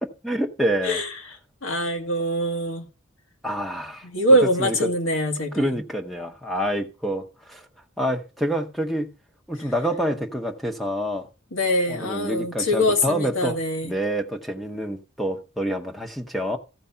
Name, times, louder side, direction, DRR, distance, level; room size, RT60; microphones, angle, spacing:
voice 1, 0.0-1.0 3.4-4.1 4.6-4.9 5.5-7.6 8.0-9.1 9.5-11.3 11.9-13.6 13.8-16.6, equal, ahead, 0.7 m, -27 dB
voice 2, 0.8-1.4 1.6-2.9 4.0-5.8 11.5-13.9, equal, 90° left, 1.9 m, -23 dB
14.0 x 4.7 x 5.5 m
head